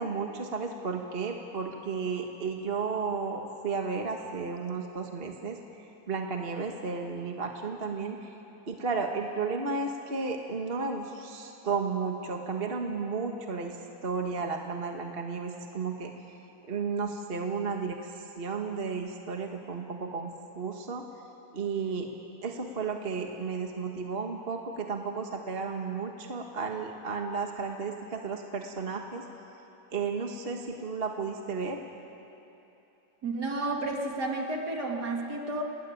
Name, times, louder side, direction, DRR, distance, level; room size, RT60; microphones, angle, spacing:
voice 1, 0.0-5.6 6.1-8.3 8.7-13.8 14.0-16.1 16.7-18.1 18.4-21.0 21.5-22.1 22.4-29.2 29.9-31.8, right 4 dB, 35° right, 3 dB, 1.6 m, -33 dB
voice 2, 33.2-35.6, right 2 dB, 55° right, 1 dB, 3.0 m, -31 dB
29.0 x 20.0 x 9.0 m, 2.9 s
omnidirectional pair, 2.1 m